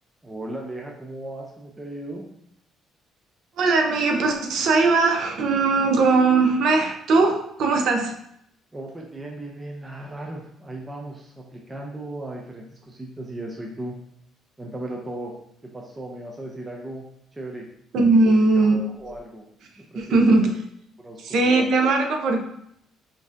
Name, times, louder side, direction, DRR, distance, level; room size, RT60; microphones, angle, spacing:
voice 1, 0.2-2.3 8.7-13.9 14.6-15.3 15.7-17.0 17.3-17.7 18.3-19.5 19.8-20.2 21.0-21.4, right 1 dB, 10° right, -1 dB, 0.4 m, -36 dB
voice 2, 3.6-8.2 17.9-18.7 19.9-20.5 21.2-22.4, right 3 dB, 55° right, 3 dB, 0.6 m, -19 dB
5.2 x 2.6 x 2.5 m, 0.73 s
cardioid pair, 175°, 0 cm